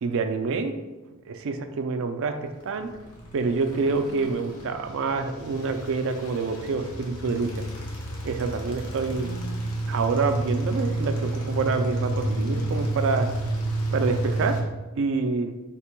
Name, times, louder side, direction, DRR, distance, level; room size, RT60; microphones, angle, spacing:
voice 1, 0.0-0.7 1.3-2.9 3.3-7.7 8.2-9.4 9.9-13.3 13.9-14.6 15.0-15.5, right 4 dB, 60° right, 7 dB, 0.3 m, -27 dB
sound 1, 2.6-14.6, right 1 dB, 80° left, 0.8 m, -30 dB
3.6 x 2.2 x 4.4 m, 1.1 s
head